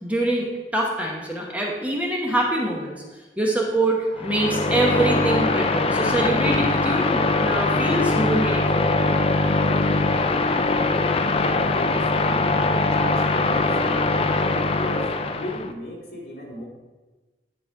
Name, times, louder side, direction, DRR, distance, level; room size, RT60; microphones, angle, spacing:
voice 1, 0.0-3.0 3.4-8.9, right 1 dB, 10° right, -2 dB, 0.9 m, -24 dB
sound 1, 4.2-15.7, left 3 dB, 35° left, 0.4 m, -22 dB
voice 2, 11.5-15.1 15.3-16.7, equal, 60° left, -4 dB, 2.4 m, -36 dB
10.5 x 4.2 x 4.7 m, 1.2 s
head